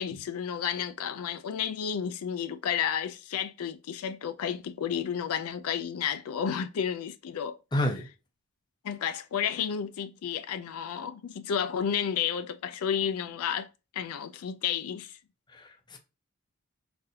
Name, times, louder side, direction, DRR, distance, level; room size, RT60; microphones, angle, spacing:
voice 1, 0.0-7.6 8.8-13.7 13.9-15.2, left 8 dB, 80° left, 0.4 m, -31 dB
voice 2, 7.7-8.1 15.5-16.0, left 1 dB, 20° left, 0.5 m, -30 dB
3.9 x 2.6 x 2.7 m
head